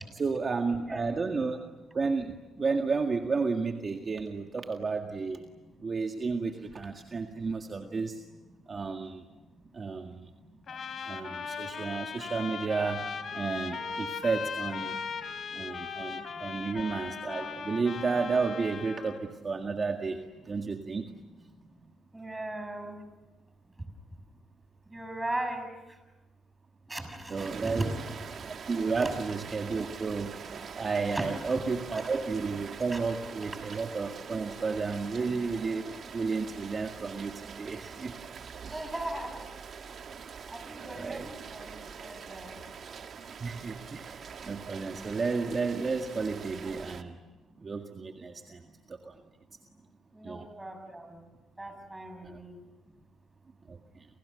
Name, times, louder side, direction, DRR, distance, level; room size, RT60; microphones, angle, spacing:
voice 1, 0.1-1.6 1.9-5.4 5.8-8.2 8.7-9.2 9.7-10.3 10.7-10.8 11.1-15.0 15.5-21.1 27.3-27.9 28.7-30.4 30.8-38.2 38.7-38.9 40.8-41.3 43.4-47.2 47.6-49.2 50.2-50.5 52.2-52.4 53.7-54.1, right 4 dB, 35° right, 4 dB, 1.9 m, -32 dB
voice 2, 0.7-1.0 22.1-23.0 24.9-25.6 26.9-27.9 29.0-29.1 31.1-31.2 31.9-32.0 32.9-33.0 38.7-39.4 40.5-42.5 50.1-51.0 51.6-52.5, right 1 dB, 15° right, 6 dB, 6.7 m, -38 dB
Trumpet, 10.7-19.2, left 6 dB, 55° left, 3.6 m, -38 dB
Rain, 27.4-47.0, right 6 dB, 55° right, 2.0 m, -44 dB
30.0 x 28.0 x 6.7 m, 1.2 s
cardioid pair, 90°, 0 cm